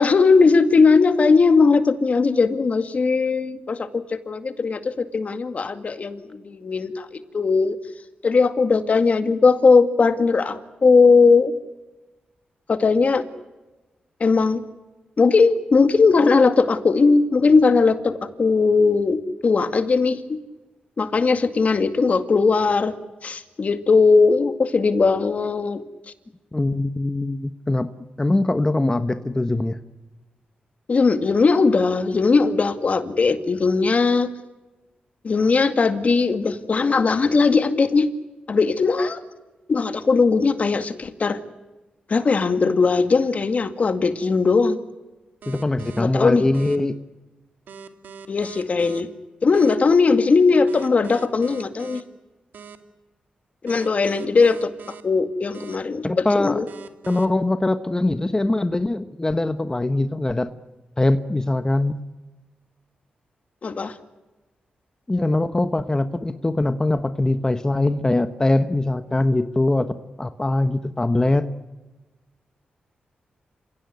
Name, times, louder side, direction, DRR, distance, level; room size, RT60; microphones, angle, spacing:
voice 1, 0.0-7.8 8.2-11.5 12.7-13.3 14.2-14.6 15.2-20.4 21.0-22.9 23.2-25.8 30.9-34.3 35.2-38.1 38.5-39.2 39.7-41.4 42.1-44.8 46.0-46.5 48.3-49.1 49.4-52.0 53.6-54.7 55.0-56.7 63.6-63.9, left 4 dB, 50° left, 10 dB, 2.1 m, -19 dB
voice 2, 26.5-27.9 28.2-29.8 45.5-47.0 56.0-56.6 57.1-60.5 61.0-62.0 65.1-71.5, left 2 dB, 20° left, 10 dB, 1.2 m, -22 dB
sound 1, 45.4-46.0 46.5-46.8 47.7-49.0 49.5-49.7 50.7-52.0 52.5-52.8 53.7-55.0 55.5-55.8 56.7-57.2, right 6 dB, 85° right, 2.3 m, -41 dB
29.0 x 17.0 x 9.5 m, 1.2 s
cardioid pair, 70°, 3 cm